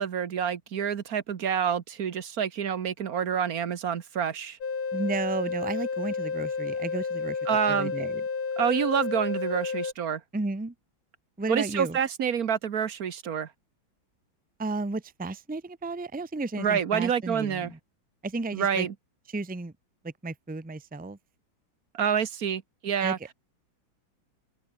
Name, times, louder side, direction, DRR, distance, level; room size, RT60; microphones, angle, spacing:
voice 1, 0.0-4.6 7.5-7.9 8.6-10.2 11.5-13.5 16.6-17.7 18.5-18.9 21.9-23.2, right 8 dB, 50° right, 1.5 m, -28 dB
sound 1, 4.6-9.9, left 5 dB, 80° left, 4.0 m, -31 dB
voice 2, 4.9-7.4 7.7-8.2 10.3-10.7 11.4-12.0 14.6-17.8 18.2-18.9 19.3-19.7 20.0-21.2 23.0-23.1, right 3 dB, 10° right, 0.6 m, -33 dB
open air
omnidirectional pair, 2.2 m